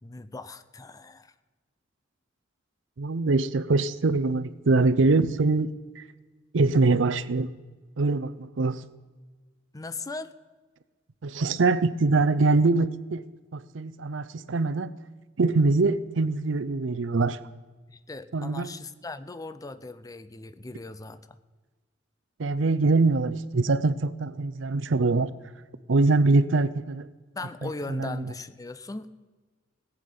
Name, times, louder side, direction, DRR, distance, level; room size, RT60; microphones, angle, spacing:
voice 1, 0.0-1.3 9.7-10.3 17.9-21.4 27.4-29.1, left 3 dB, 20° left, 13 dB, 0.5 m, -38 dB
voice 2, 3.0-5.7 6.0-6.1 6.5-7.5 8.0-8.8 11.2-13.2 13.5-14.9 15.4-17.4 18.3-18.7 22.4-25.3 25.9-27.1 27.6-28.3, right 3 dB, 75° right, 15 dB, 0.6 m, -23 dB
18.0 x 8.5 x 5.4 m, 1.3 s
head